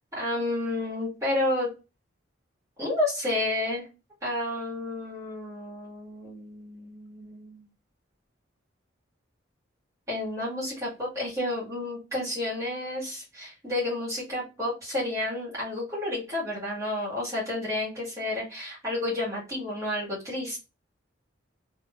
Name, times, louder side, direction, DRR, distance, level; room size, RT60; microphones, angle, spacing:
voice 1, 0.2-1.7 2.8-3.9 4.2-7.7 10.1-20.6, left 1 dB, 15° right, -7 dB, 1.9 m, -31 dB
3.4 x 2.8 x 3.0 m, 0.28 s
head